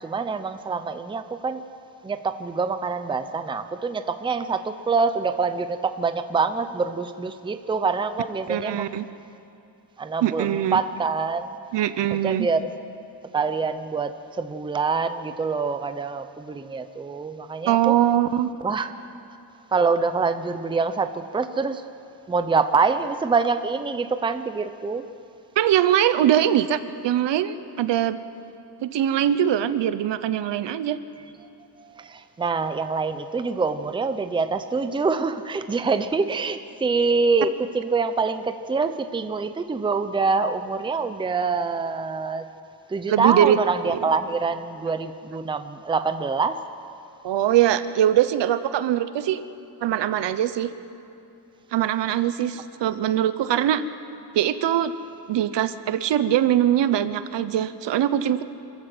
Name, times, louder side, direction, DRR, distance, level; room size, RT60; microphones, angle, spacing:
voice 1, 0.0-1.6 2.0-9.0 10.0-11.6 12.2-12.7 13.3-18.0 18.6-18.9 19.7-21.8 22.3-25.1 31.8-42.5 42.9-46.7, right 4 dB, 10° right, 10 dB, 0.6 m, -25 dB
voice 2, 8.5-9.0 10.2-10.8 11.7-12.5 17.7-18.5 25.6-28.2 28.8-31.0 43.1-43.6 47.2-49.4 49.8-50.7 51.7-53.8 54.3-54.9 55.3-58.4, right 11 dB, 80° right, 13 dB, 1.0 m, -22 dB
26.5 x 14.0 x 7.9 m, 2.7 s
wide cardioid pair, 175°, 42 cm